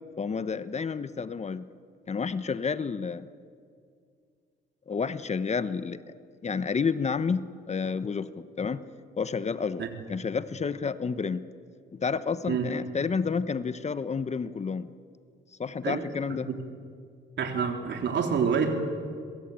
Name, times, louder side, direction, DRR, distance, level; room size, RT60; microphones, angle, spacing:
voice 1, 0.2-1.7 2.1-3.3 4.9-6.0 6.4-8.8 9.2-11.5 11.9-14.9 15.6-16.5, left 5 dB, 35° left, 13 dB, 1.1 m, -30 dB
voice 2, 17.4-18.9, right 6 dB, 65° right, 4 dB, 3.9 m, -27 dB
26.5 x 23.0 x 8.8 m, 2.2 s
cardioid pair, 90°, 20 cm